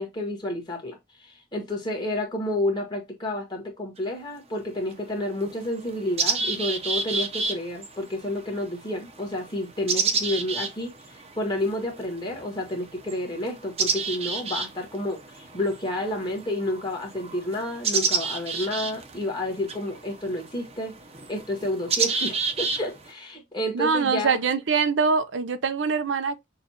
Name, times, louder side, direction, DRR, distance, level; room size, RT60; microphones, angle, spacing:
voice 1, 0.0-21.0 21.3-24.4, left 1 dB, 25° left, 1.6 m, -30 dB
sound 1, 4.0-4.1 4.9-5.0 5.4-23.1, right 4 dB, 35° right, 0.7 m, -30 dB
voice 2, 23.7-26.5, right 5 dB, 85° right, 0.5 m, -24 dB
6.5 x 2.4 x 2.8 m
head